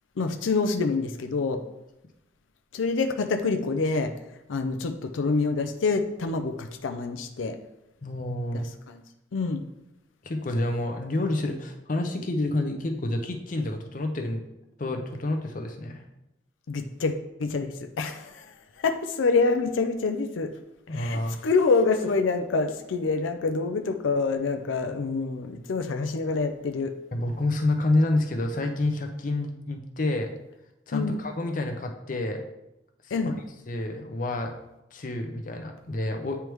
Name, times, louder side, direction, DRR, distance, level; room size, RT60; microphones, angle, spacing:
voice 1, 0.2-1.6 2.7-4.1 4.5-7.6 8.5-9.0 9.3-9.6 16.7-17.1 17.4-20.5 20.9-26.9 30.9-31.2 33.1-33.3, left 4 dB, 90° left, 7 dB, 0.5 m, -26 dB
voice 2, 8.0-8.7 10.2-14.4 14.8-16.0 20.9-21.4 27.1-30.3 30.9-32.4 33.0-33.1 33.7-34.5 34.9-36.4, left 2 dB, 45° left, 4 dB, 0.6 m, -28 dB
9.0 x 3.4 x 3.1 m, 0.90 s
head